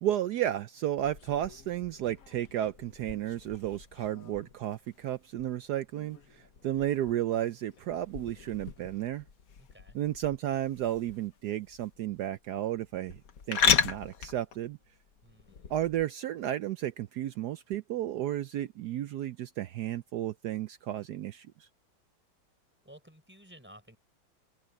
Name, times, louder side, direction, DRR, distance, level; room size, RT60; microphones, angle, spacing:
voice 1, 0.0-9.2 9.9-13.2 13.5-14.8 15.7-21.7, right 12 dB, 75° right, 1.0 m, -33 dB
sound 1, 1.0-16.0, left 7 dB, 50° left, 1.4 m, -36 dB
voice 2, 9.6-10.0 15.2-15.7 22.8-24.0, equal, 5° right, 4.2 m, -54 dB
open air
omnidirectional pair, 2.2 m